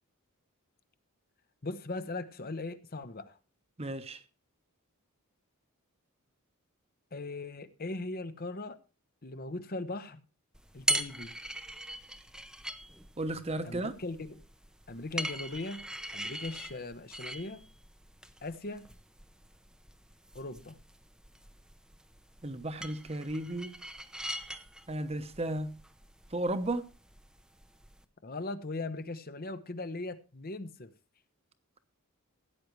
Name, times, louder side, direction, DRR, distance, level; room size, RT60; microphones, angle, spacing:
voice 1, 1.6-3.4 7.1-8.8 9.2-10.2 10.7-11.3 13.6-14.4 14.9-15.8 16.1-17.6 18.4-18.9 20.3-20.8 28.2-30.9, left 2 dB, 40° left, 0.9 m, -39 dB
voice 2, 3.8-4.2 13.2-13.9 22.4-23.7 24.9-25.8 26.3-26.9, right 1 dB, 25° right, 1.0 m, -34 dB
sound 1, 10.5-28.0, right 1 dB, 5° right, 0.7 m, -41 dB
16.5 x 9.4 x 3.2 m
head